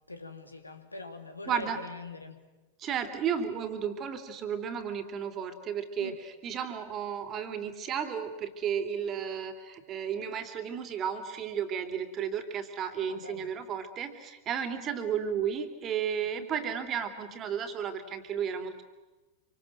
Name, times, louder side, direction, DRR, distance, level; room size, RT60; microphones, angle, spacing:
voice 1, 0.1-2.5 6.0-6.2 13.0-13.5, left 3 dB, 80° left, 7 dB, 2.5 m, -43 dB
voice 2, 1.5-1.8 2.8-18.8, right 8 dB, 30° right, 8 dB, 3.0 m, -33 dB
27.0 x 25.5 x 7.8 m, 1.2 s
figure-of-eight pair, 90°, 0 cm